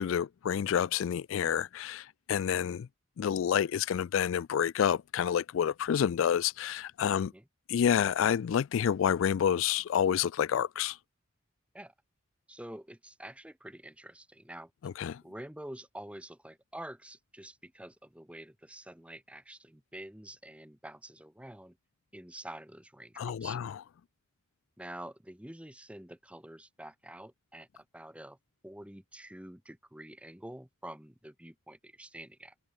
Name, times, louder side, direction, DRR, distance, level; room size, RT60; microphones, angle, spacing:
voice 1, 0.0-2.9 3.2-7.3 7.7-11.0 14.8-15.2 23.2-23.8, left 8 dB, 70° left, 0.3 m, -29 dB
voice 2, 12.5-14.7 15.2-21.8 22.1-23.6 24.8-28.4 28.6-32.5, right 1 dB, 5° right, 1.2 m, -47 dB
head